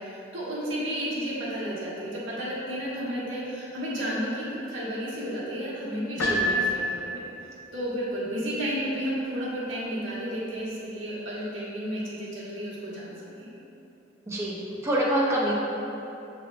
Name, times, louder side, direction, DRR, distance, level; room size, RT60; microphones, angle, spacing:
voice 1, 0.0-7.2 7.7-13.5, equal, 75° right, -8 dB, 1.3 m, -32 dB
Piano, 6.2-7.4, left 1 dB, 90° left, 0.6 m, -27 dB
voice 2, 6.2-6.5 14.2-15.5, right 1 dB, 15° right, -5 dB, 0.6 m, -26 dB
6.2 x 3.3 x 2.6 m, 3.0 s
head